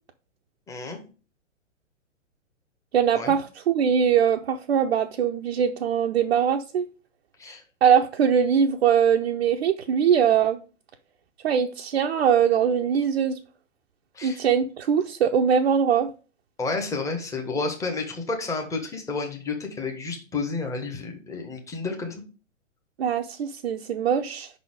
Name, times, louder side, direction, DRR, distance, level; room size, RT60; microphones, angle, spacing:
voice 1, 0.7-1.0 3.1-3.4 7.4-7.6 14.1-14.4 16.6-22.2, left 3 dB, 10° left, 1.0 m, -31 dB
voice 2, 2.9-6.9 7.8-10.6 11.4-13.4 14.2-16.1 23.0-24.5, right 7 dB, 55° right, 0.6 m, -22 dB
5.5 x 4.0 x 4.9 m
figure-of-eight pair, 115°, 39 cm